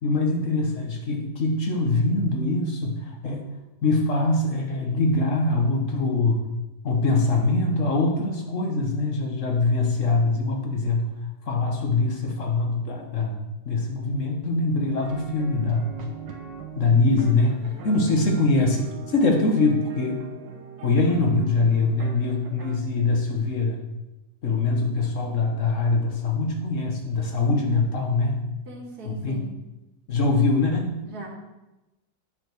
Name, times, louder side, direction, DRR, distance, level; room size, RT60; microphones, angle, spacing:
voice 1, 0.0-3.5 3.8-6.4 6.8-11.1 11.5-15.9 16.8-20.2 20.8-23.8 24.4-28.5 29.0-29.4 30.1-30.9, left 3 dB, 45° left, 2 dB, 1.5 m, -23 dB
sound 1, 15.0-22.8, right 6 dB, 70° right, 1.8 m, -41 dB
voice 2, 28.7-29.5 31.0-31.3, right 2 dB, 55° right, -3 dB, 2.5 m, -39 dB
9.3 x 5.2 x 6.2 m, 1.0 s
omnidirectional pair, 2.0 m